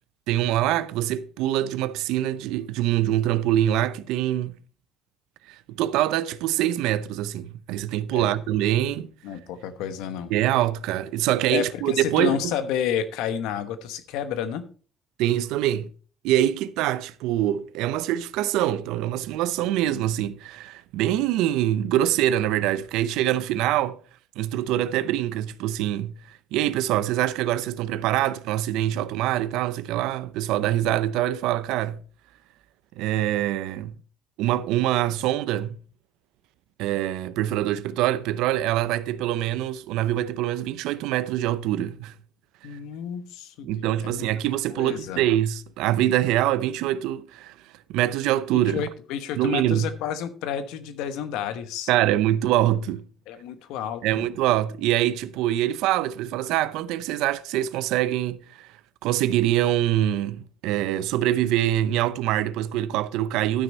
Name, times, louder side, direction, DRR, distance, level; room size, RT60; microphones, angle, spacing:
voice 1, 0.3-4.5 5.5-9.1 10.3-12.5 15.2-15.9 16.2-24.0 24.4-32.0 33.0-33.9 34.4-35.8 36.8-42.1 43.6-47.5 47.9-48.8 49.3-49.9 51.9-53.0 54.0-58.7 59.0-63.6, right 13 dB, 85° right, 0.6 m, -24 dB
voice 2, 9.2-10.3 11.5-14.6 19.6-20.0 42.6-44.3 44.7-45.2 48.6-51.9 53.3-54.3, left 9 dB, 85° left, 1.0 m, -31 dB
12.5 x 6.2 x 4.3 m
cardioid pair, 100°, 0 cm